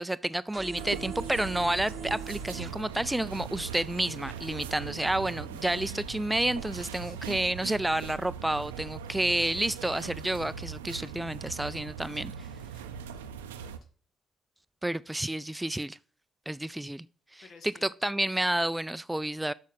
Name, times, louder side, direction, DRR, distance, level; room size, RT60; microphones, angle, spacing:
voice 1, 0.0-12.5 14.8-16.0 16.5-17.1 17.3-19.5, right 1 dB, 10° right, 0.4 m, -30 dB
sound 1, 0.5-2.7, right 5 dB, 40° right, 0.8 m, -41 dB
sound 2, 0.8-13.8, right 7 dB, 85° right, 0.5 m, -40 dB
voice 2, 7.0-7.5 12.6-13.7 17.4-17.9, left 4 dB, 60° left, 1.3 m, -56 dB
7.2 x 6.4 x 5.8 m
hypercardioid pair, 45°, 0 cm